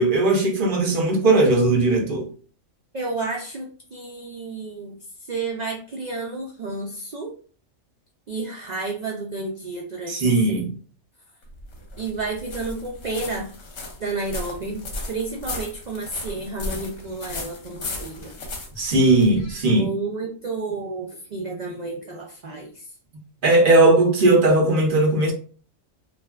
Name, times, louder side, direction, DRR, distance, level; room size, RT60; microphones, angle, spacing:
voice 1, 0.0-2.3 10.1-10.7 18.8-19.9 23.4-25.3, right 2 dB, 50° right, 0.7 m, -18 dB
voice 2, 2.9-7.3 8.3-10.3 12.0-13.5 14.0-14.8 15.1-18.4 19.7-22.9, right 3 dB, 80° right, 0.3 m, -31 dB
sound 1, 11.4-19.6, left 2 dB, 65° left, 1.0 m, -35 dB
3.2 x 2.5 x 2.2 m
omnidirectional pair, 1.4 m